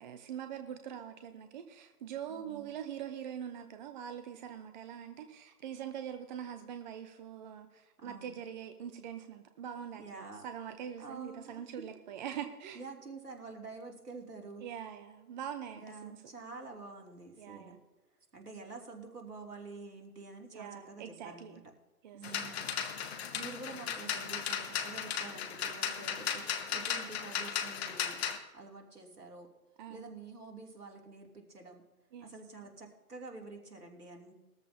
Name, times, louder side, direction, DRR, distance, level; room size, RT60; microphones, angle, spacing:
voice 1, 0.0-12.8 14.6-16.2 17.4-17.8 20.5-21.6 22.0-22.2 29.8-30.2 32.1-32.3, right 9 dB, 30° right, 8 dB, 0.8 m, -43 dB
voice 2, 2.3-2.7 8.0-8.4 10.0-10.4 11.0-11.8 12.7-14.6 15.8-17.8 18.3-21.6 22.1-26.5 26.7-28.2 28.5-29.5 29.9-31.8 32.2-34.3, right 3 dB, 75° right, 1 dB, 3.0 m, -48 dB
sound 1, 22.2-28.4, left 8 dB, 40° left, 1.5 m, -36 dB
20.0 x 13.5 x 2.8 m, 1.1 s
figure-of-eight pair, 125°, 46 cm